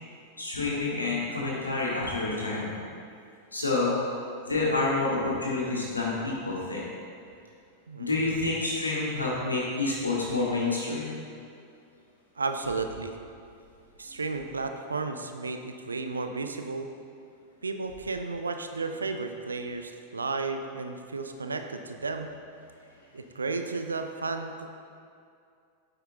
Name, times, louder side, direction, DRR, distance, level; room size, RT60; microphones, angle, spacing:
voice 1, 0.4-2.8 3.5-4.0 4.5-6.8 8.0-11.2, left 3 dB, 80° left, -5 dB, 2.2 m, -28 dB
voice 2, 12.4-13.2 14.0-16.9 17.6-22.3 23.1-24.7, right 3 dB, 75° right, 7 dB, 0.6 m, -33 dB
9.2 x 8.0 x 3.7 m, 2.4 s
figure-of-eight pair, 90°, 0 cm